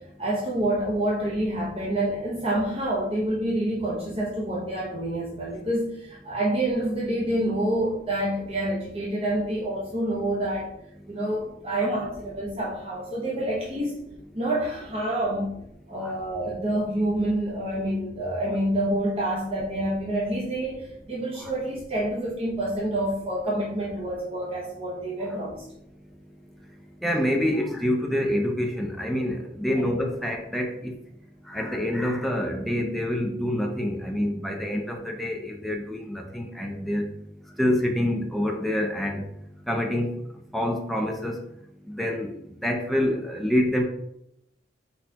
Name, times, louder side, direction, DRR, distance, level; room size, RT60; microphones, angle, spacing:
voice 1, 0.2-10.7 11.1-14.0 14.3-15.5 15.9-25.7 29.7-29.8, right 1 dB, 35° right, -6 dB, 0.9 m, -27 dB
voice 2, 27.0-30.9 31.5-37.1 37.6-39.2 39.7-40.1 40.5-41.4 41.9-42.3 42.6-43.8, left 1 dB, ahead, 1 dB, 0.4 m, -26 dB
4.5 x 4.2 x 2.8 m, 0.79 s
head